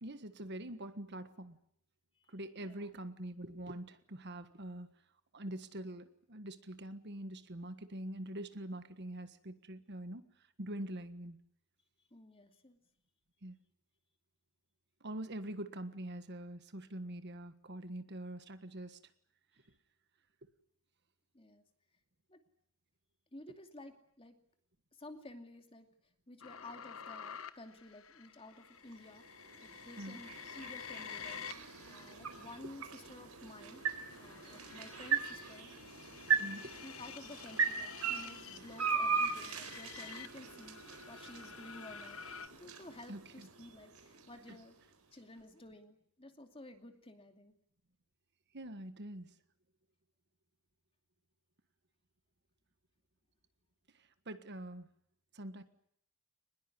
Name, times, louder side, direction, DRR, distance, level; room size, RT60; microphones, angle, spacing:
voice 1, 0.0-1.6 2.3-4.9 5.3-10.2 10.6-11.4 13.4-13.6 15.0-19.0 30.0-30.2 36.4-36.7 43.1-43.5 44.5-44.6 48.5-49.4 53.9-54.9 55.3-55.6, right 1 dB, 50° right, 11 dB, 1.5 m, -44 dB
voice 2, 2.2-3.0 12.1-12.8 21.3-21.6 22.3-22.4 23.3-24.4 24.9-25.9 26.3-31.4 31.9-33.8 34.2-35.7 36.3-42.2 42.5-44.8 45.1-47.5, left 1 dB, 25° left, 6 dB, 2.6 m, -53 dB
sound 1, 26.4-32.6 33.2-42.5, left 8 dB, 65° left, 1.3 m, -50 dB
sound 2, 28.7-44.9, right 6 dB, 80° right, 4.3 m, -39 dB
23.5 x 20.5 x 9.9 m, 0.68 s
head